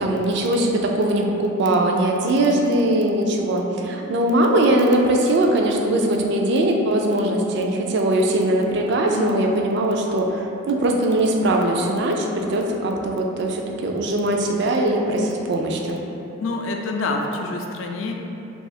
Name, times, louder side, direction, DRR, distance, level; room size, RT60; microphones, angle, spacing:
voice 1, 0.0-16.0, right 1 dB, 55° right, 2 dB, 0.3 m, -21 dB
voice 2, 9.1-9.6 16.4-18.1, left 3 dB, 70° left, 2 dB, 0.3 m, -27 dB
2.7 x 2.4 x 4.0 m, 2.9 s
head